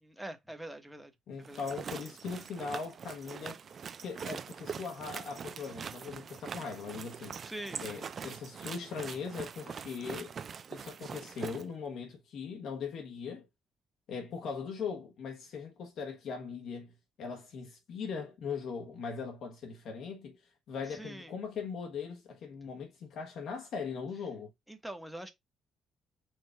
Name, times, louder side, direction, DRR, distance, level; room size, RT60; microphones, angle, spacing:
voice 1, 0.0-1.1 1.5-1.7 7.4-8.1 20.9-21.3 24.7-25.3, right 1 dB, 5° right, 1.0 m, -44 dB
voice 2, 1.3-3.6 4.0-7.4 7.8-10.3 10.7-13.5 14.1-20.4 20.7-24.5, left 5 dB, 75° left, 1.2 m, -40 dB
sound 1, 1.4-11.6, right 6 dB, 50° right, 0.4 m, -43 dB
4.8 x 2.4 x 4.5 m
cardioid pair, 90°, 0 cm